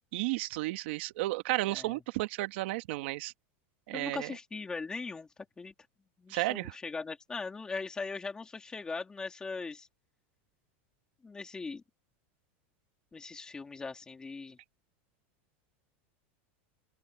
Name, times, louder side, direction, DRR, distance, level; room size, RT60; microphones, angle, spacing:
voice 1, 0.1-3.3 3.9-4.3 6.3-6.7, right 19 dB, 65° right, 1.7 m, -33 dB
voice 2, 1.7-2.0 3.9-5.3 5.6-5.7 6.2-9.9 11.2-11.8 13.1-14.6, left 4 dB, 10° left, 3.3 m, -40 dB
open air
supercardioid pair, 155°, 6 cm